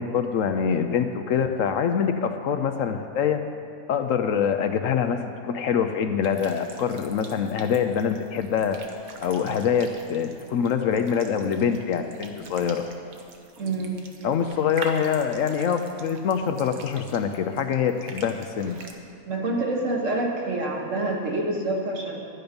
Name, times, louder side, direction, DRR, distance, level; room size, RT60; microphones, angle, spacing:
voice 1, 0.0-3.4 3.9-8.8 9.2-12.8 14.2-18.8, left 7 dB, 70° left, 7 dB, 0.9 m, -25 dB
sound 1, 6.2-18.9, right 4 dB, 75° right, 1.4 m, -44 dB
voice 2, 13.6-14.0 19.3-22.2, right 2 dB, 60° right, -1 dB, 1.8 m, -27 dB
12.0 x 9.5 x 5.2 m, 2.7 s
omnidirectional pair, 1.5 m